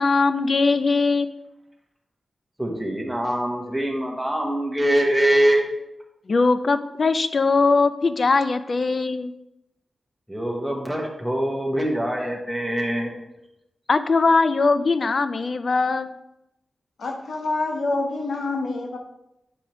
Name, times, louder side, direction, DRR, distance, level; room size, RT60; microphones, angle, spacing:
voice 1, 0.0-1.3 6.3-9.3 13.9-16.2, left 4 dB, 50° left, 11 dB, 0.4 m, -20 dB
voice 2, 2.6-5.7 10.3-13.1, right 1 dB, ahead, -1 dB, 1.3 m, -23 dB
voice 3, 17.0-19.0, left 2 dB, 85° left, 3 dB, 0.9 m, -27 dB
8.6 x 4.8 x 3.1 m, 0.88 s
wide cardioid pair, 115°, 0 cm